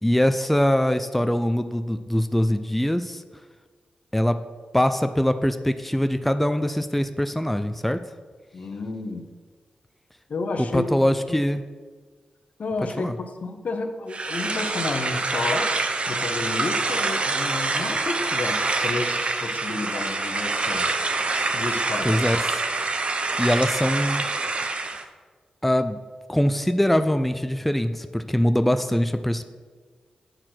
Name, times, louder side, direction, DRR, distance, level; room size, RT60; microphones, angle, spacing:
voice 1, 0.0-3.2 4.1-4.4 4.7-8.0 10.6-11.6 13.0-13.2 22.0-22.6 23.4-24.3 25.6-26.0 26.3-29.5, equal, 5° left, 9 dB, 0.4 m, -23 dB
voice 2, 8.5-9.3 10.3-11.4 12.6-15.7 16.1-20.9 21.5-22.2, left 3 dB, 65° left, 6 dB, 0.8 m, -31 dB
sound 1, 14.1-25.0, right 3 dB, 45° right, 0.7 m, -26 dB
7.8 x 4.5 x 5.9 m, 1.5 s
cardioid pair, 55°, 3 cm